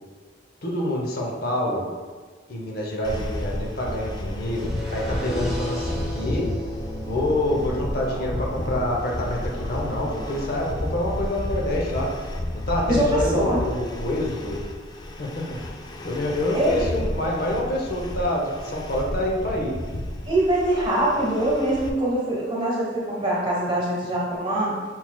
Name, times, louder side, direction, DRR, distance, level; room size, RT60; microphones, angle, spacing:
voice 1, 0.6-1.9 2.5-6.5 7.0-12.1 12.7-14.6 15.2-15.4 16.0-19.7, left 1 dB, 55° left, -2 dB, 0.8 m, -27 dB
sound 1, 3.0-21.9, left 1 dB, 25° left, 0.3 m, -32 dB
sound 2, 4.5-10.5, equal, ahead, 0.9 m, -36 dB
voice 2, 12.9-13.6 16.5-16.8 20.3-24.7, right 1 dB, 25° right, -5 dB, 1.2 m, -23 dB
5.8 x 4.0 x 2.3 m, 1.5 s
head